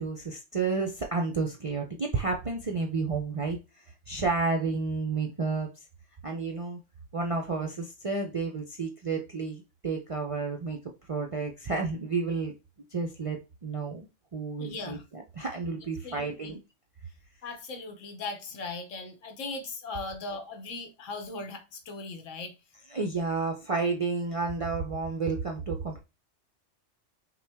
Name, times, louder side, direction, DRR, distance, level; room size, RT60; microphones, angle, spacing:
voice 1, 0.0-5.7 6.2-6.8 7.1-10.8 11.1-12.5 12.9-14.1 14.3-16.6 22.9-26.0, right 4 dB, 50° right, 0.4 m, -31 dB
voice 2, 14.6-15.0 16.0-16.6 17.4-22.5, left 3 dB, 85° left, 1.3 m, -38 dB
5.6 x 2.2 x 3.4 m
omnidirectional pair, 1.3 m